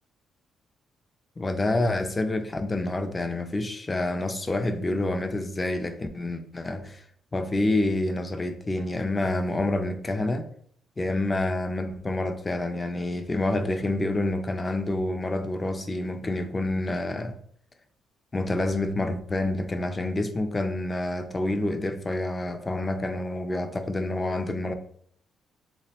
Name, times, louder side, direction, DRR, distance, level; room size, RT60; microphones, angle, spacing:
voice 1, 1.4-7.0 7.3-10.5 11.0-17.3 18.3-24.7, left 2 dB, 25° left, 0.3 m, -28 dB
3.3 x 2.1 x 2.8 m
cardioid pair, 90°, 0 cm